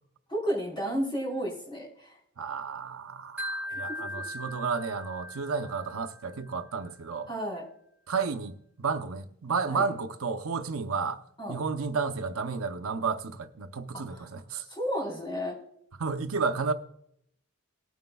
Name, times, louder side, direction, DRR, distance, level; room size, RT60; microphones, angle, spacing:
voice 1, 0.3-2.2 3.7-4.0 7.3-7.6 9.7-9.8 11.4-11.6 14.0-14.3 14.6-15.6, equal, 20° left, 4.1 m, -32 dB
voice 2, 2.4-7.3 8.1-11.2 11.5-14.7 16.0-16.7, right 5 dB, 80° right, 0.7 m, -32 dB
Wind chime, 3.4-6.5, left 1 dB, 10° right, 1.6 m, -39 dB
19.0 x 9.3 x 2.3 m
head